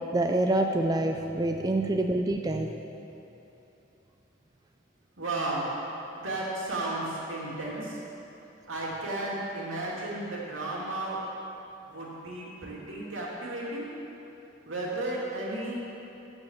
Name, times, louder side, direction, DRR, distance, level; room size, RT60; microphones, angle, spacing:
voice 1, 0.0-2.7, right 1 dB, 20° right, 3 dB, 0.4 m, -26 dB
voice 2, 5.2-5.7 6.1-7.0 7.3-7.9 8.7-11.2 11.8-13.9 14.6-15.8, right 2 dB, 80° right, -5 dB, 2.4 m, -33 dB
9.0 x 7.5 x 7.3 m, 2.9 s
head